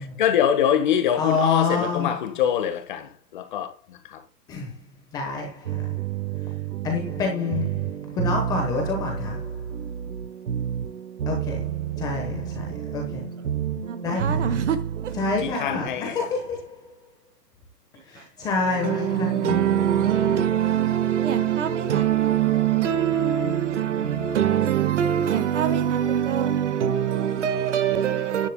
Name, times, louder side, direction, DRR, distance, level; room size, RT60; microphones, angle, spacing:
voice 1, 0.2-3.7 4.1-4.2 15.4-16.2, left 9 dB, 30° left, 1.4 m, -24 dB
voice 2, 1.2-2.3 4.5-4.7 5.1-5.9 6.8-9.5 11.3-13.3 14.0-14.6 15.1-16.9 18.1-19.6, left 4 dB, 10° left, 1.0 m, -28 dB
sound 1, 5.7-15.6, right 9 dB, 60° right, 1.4 m, -30 dB
voice 3, 13.9-15.1 15.7-15.9 18.5-28.5, right 10 dB, 45° right, 1.6 m, -23 dB
14.5 x 10.5 x 2.2 m
hypercardioid pair, 165°, 49 cm